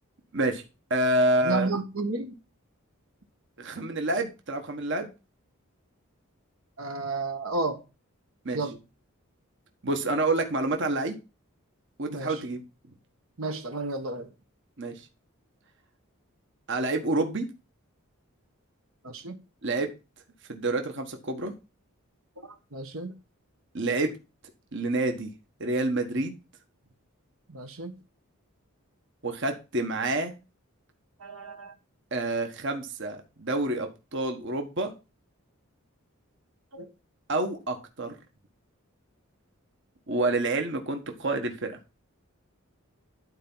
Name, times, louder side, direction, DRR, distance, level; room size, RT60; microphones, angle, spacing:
voice 1, 0.9-1.7 3.6-5.1 8.4-8.6 9.8-11.2 12.0-12.6 14.8-14.9 16.7-17.5 19.6-19.9 20.5-21.5 23.7-24.1 24.7-25.3 25.6-26.3 29.2-30.3 32.1-34.9 37.3-38.1 40.1-41.8, right 2 dB, 55° right, 1.4 m, -28 dB
voice 2, 1.4-2.3 6.8-7.8 8.5-8.8 12.1-12.4 13.4-14.3 19.0-19.4 22.4-23.1 27.5-28.0 31.2-31.7 36.7-36.9, right 2 dB, 75° right, 1.5 m, -32 dB
11.5 x 4.6 x 5.6 m
head